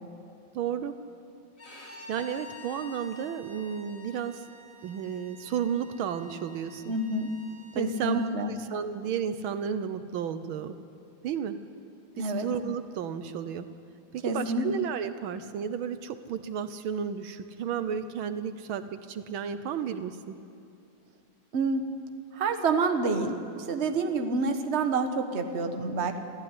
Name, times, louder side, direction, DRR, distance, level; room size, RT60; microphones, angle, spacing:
voice 1, 0.5-1.0 2.1-4.5 4.8-6.9 7.8-10.8 11.2-11.6 12.2-13.7 14.1-20.4, right 8 dB, 75° right, 11 dB, 1.6 m, -33 dB
Bowed string instrument, 1.6-8.3, left 2 dB, 40° left, 3.9 m, -49 dB
voice 2, 6.9-7.3 7.7-8.5 12.2-12.5 14.2-14.6 21.5-21.8 22.3-26.2, right 3 dB, 35° right, 7 dB, 1.5 m, -28 dB
26.5 x 15.0 x 9.8 m, 2.6 s
omnidirectional pair, 2.3 m